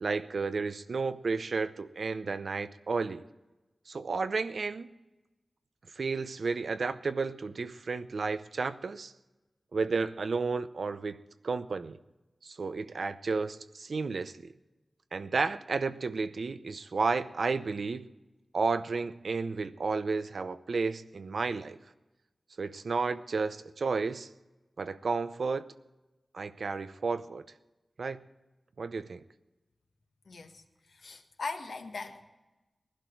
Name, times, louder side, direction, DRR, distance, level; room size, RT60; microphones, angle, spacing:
voice 1, 0.0-3.2 3.9-4.9 6.0-9.1 9.7-11.2 11.4-12.0 12.4-14.5 15.1-18.1 18.5-21.8 22.6-24.3 24.8-25.7 26.3-27.5 28.0-28.2 28.8-29.2, right 4 dB, 75° right, 12 dB, 0.7 m, -32 dB
voice 2, 30.3-30.6 30.9-32.2, left 3 dB, 90° left, 4 dB, 1.6 m, -40 dB
19.5 x 12.0 x 4.6 m, 1.1 s
wide cardioid pair, 80°, 0 cm